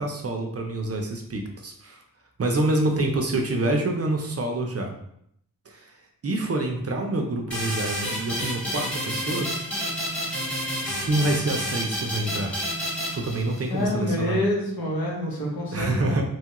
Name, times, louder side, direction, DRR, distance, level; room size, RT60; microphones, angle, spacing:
voice 1, 0.0-2.0 2.4-4.9 5.7-5.9 6.2-9.6 11.0-12.6 13.1-14.4 15.7-16.2, right 2 dB, 45° right, 2 dB, 0.5 m, -27 dB
sound 1, 7.5-13.9, equal, 5° left, 1.1 m, -30 dB
voice 2, 13.7-16.2, left 1 dB, 75° left, -3 dB, 1.0 m, -27 dB
3.0 x 2.3 x 2.8 m, 0.71 s
wide cardioid pair, 110°, 36 cm